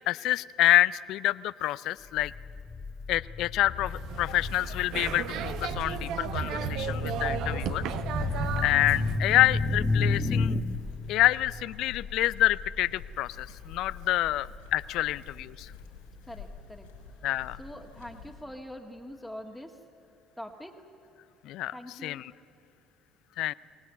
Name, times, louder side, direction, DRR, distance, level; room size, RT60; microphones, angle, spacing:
voice 1, 0.0-2.3 3.1-7.8 8.4-10.6 11.1-15.7 17.2-17.6 21.4-21.7 22.0-22.3 23.4-23.5, left 15 dB, 65° left, 18 dB, 0.5 m, -27 dB
sound 1, 2.2-10.6, left 4 dB, 25° left, 1.3 m, -32 dB
sound 2, 3.8-9.2, right 8 dB, 65° right, 1.0 m, -34 dB
sound 3, 8.0-18.5, left 5 dB, 85° left, 4.9 m, -46 dB
voice 2, 14.0-14.4 16.2-16.9 17.6-19.8 20.4-20.8 21.7-22.2, equal, 5° left, 2 dB, 1.8 m, -44 dB
23.5 x 19.0 x 8.2 m, 2.8 s
hypercardioid pair, 60°, 0 cm